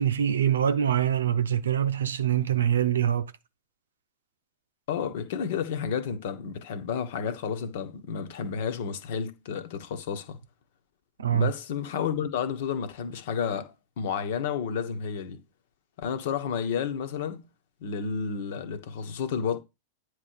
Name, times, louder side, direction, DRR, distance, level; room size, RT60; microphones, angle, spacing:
voice 1, 0.0-3.3 11.2-11.5, right 9 dB, 70° right, 0.7 m, -24 dB
voice 2, 4.9-10.4 11.3-15.4 16.0-17.4 17.8-19.6, left 7 dB, 55° left, 1.3 m, -31 dB
9.4 x 3.2 x 6.6 m
figure-of-eight pair, 95°, 0 cm